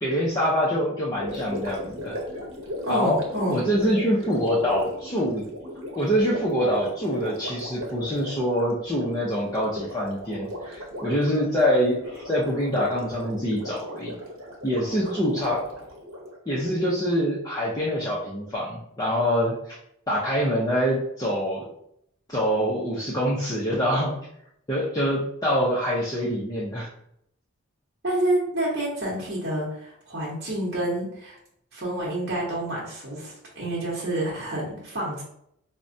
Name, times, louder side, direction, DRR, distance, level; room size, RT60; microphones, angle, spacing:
voice 1, 0.0-2.2 2.9-3.2 3.5-5.4 6.0-14.1 14.6-15.6 16.5-19.8 20.1-21.7 22.3-24.2 24.7-26.9, equal, 15° left, -7 dB, 0.5 m, -25 dB
Gurgling, 1.1-16.4, left 1 dB, 80° right, 0.8 m, -37 dB
voice 2, 2.8-3.6 15.0-15.1 28.0-31.4 31.7-35.2, right 1 dB, 50° right, -5 dB, 0.9 m, -28 dB
4.5 x 2.1 x 2.6 m, 0.73 s
head